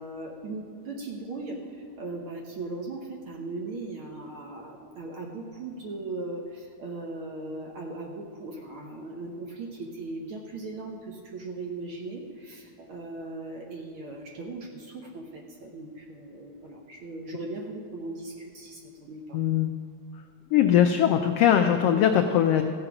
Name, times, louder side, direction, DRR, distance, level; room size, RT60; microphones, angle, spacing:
voice 1, 0.0-19.4, right 2 dB, 60° right, 0 dB, 1.5 m, -38 dB
voice 2, 19.3-19.7 20.5-22.6, left 9 dB, 85° left, 5 dB, 1.3 m, -21 dB
15.0 x 7.7 x 5.9 m, 2.5 s
omnidirectional pair, 3.3 m